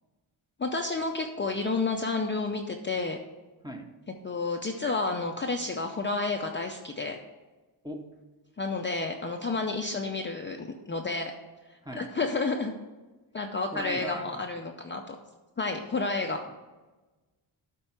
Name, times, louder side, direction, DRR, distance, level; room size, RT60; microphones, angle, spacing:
voice 1, 0.6-3.2 4.2-7.2 8.6-11.3 12.0-12.7 13.3-15.2 15.6-16.4, left 3 dB, 25° left, 2 dB, 0.5 m, -30 dB
voice 2, 11.8-12.1 13.7-14.4, equal, 10° right, 3 dB, 0.8 m, -38 dB
12.0 x 4.5 x 5.8 m, 1.2 s
wide cardioid pair, 180°, 47 cm